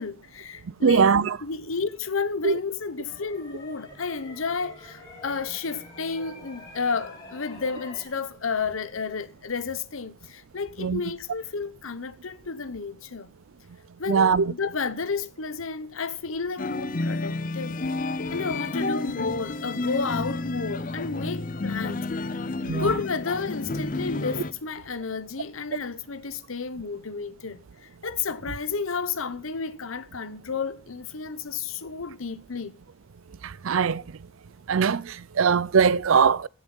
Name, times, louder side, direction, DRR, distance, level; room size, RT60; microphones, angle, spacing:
voice 1, 0.0-1.1 1.4-13.3 14.0-17.8 18.3-22.4 22.7-32.8, left 5 dB, 85° left, 0.9 m, -31 dB
voice 2, 0.8-1.4 2.4-2.6 10.8-11.0 14.1-14.5 22.6-22.9 33.4-34.0 34.7-36.5, right 6 dB, 80° right, 0.5 m, -21 dB
sound 1, 3.1-8.1, left 2 dB, 20° left, 5.9 m, -46 dB
sound 2, 16.6-24.5, left 2 dB, 40° left, 0.6 m, -30 dB
15.5 x 7.4 x 5.4 m
head